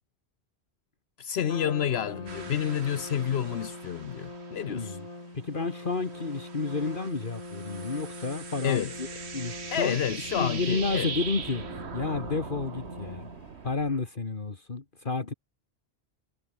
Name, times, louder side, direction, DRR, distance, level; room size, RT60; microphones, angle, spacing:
voice 1, 1.2-5.0 8.6-8.9 9.7-11.1, left 9 dB, 75° left, 1.0 m, -29 dB
Trumpet, 1.4-13.6, left 2 dB, 35° left, 3.5 m, -43 dB
sound 1, 2.3-5.2 5.5-14.0, right 6 dB, 85° right, 1.7 m, -41 dB
voice 2, 4.7-5.1 5.3-9.1 9.3-10.0 10.4-11.7 11.9-13.3 13.6-15.3, left 4 dB, 50° left, 2.0 m, -31 dB
omnidirectional pair, 1.1 m